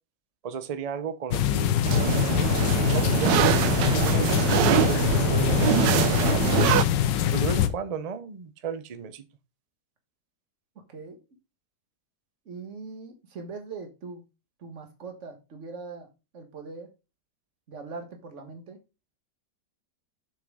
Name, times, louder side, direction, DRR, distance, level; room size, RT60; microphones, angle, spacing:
voice 1, 0.4-1.8 2.9-6.6 7.3-9.2, right 6 dB, 65° right, 11 dB, 0.3 m, -34 dB
sound 1, 1.3-7.7, left 11 dB, 85° left, 1.4 m, -24 dB
sound 2, 1.8-6.8, right 10 dB, 85° right, 1.3 m, -24 dB
voice 2, 12.5-14.2 14.6-16.1 16.3-16.9 17.7-18.8, right 4 dB, 45° right, 5 dB, 1.8 m, -41 dB
7.2 x 6.1 x 3.6 m, 0.28 s
omnidirectional pair, 1.9 m